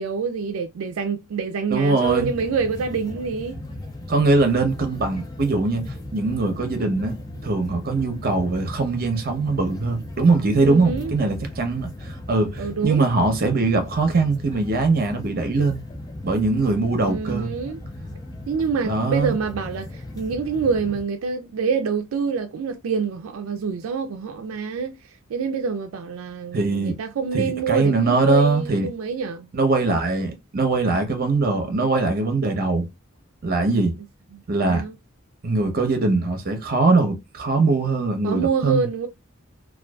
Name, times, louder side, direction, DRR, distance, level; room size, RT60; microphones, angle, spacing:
voice 1, 0.0-3.6 10.6-11.1 12.6-13.0 17.1-17.8 18.5-25.0 25.3-29.5 34.3-34.9 38.2-39.1, right 5 dB, 85° right, 0.4 m, -26 dB
voice 2, 1.7-2.3 4.1-15.8 16.2-17.5 18.8-19.3 26.5-27.0 27.3-28.9 29.5-32.9 33.4-34.0 34.5-34.8 35.4-38.9, right 3 dB, 50° right, 0.7 m, -21 dB
sound 1, 2.0-21.0, left 1 dB, 20° left, 0.4 m, -37 dB
2.5 x 2.3 x 2.2 m
head